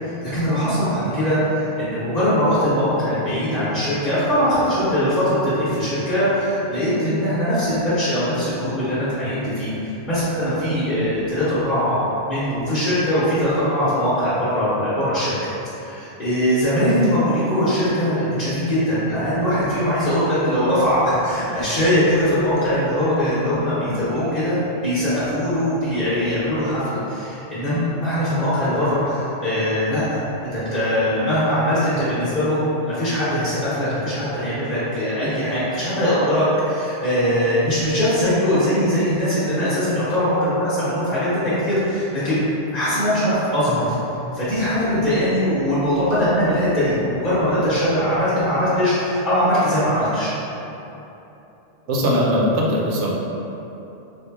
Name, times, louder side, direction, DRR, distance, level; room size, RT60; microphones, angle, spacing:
voice 1, 0.0-12.0 12.3-15.3 15.8-43.9 44.3-50.3, equal, 45° left, -14 dB, 1.0 m, -21 dB
voice 2, 51.9-53.1, equal, 75° right, -3 dB, 0.9 m, -20 dB
4.2 x 2.6 x 2.2 m, 3.0 s
omnidirectional pair, 1.2 m